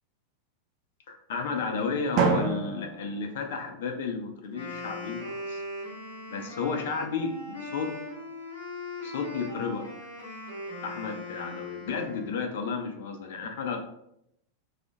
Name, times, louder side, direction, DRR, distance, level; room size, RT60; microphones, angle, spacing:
voice 1, 1.1-5.6 6.3-7.9 9.0-9.8 10.8-13.8, left 5 dB, 55° left, 4 dB, 0.4 m, -32 dB
Drum, 2.2-4.1, right 4 dB, 40° right, 0.4 m, -29 dB
Wind instrument woodwind instrument, 4.4-12.5, left 2 dB, 70° right, 1.0 m, -40 dB
2.3 x 2.0 x 2.8 m, 0.78 s
figure-of-eight pair, 90°, 0 cm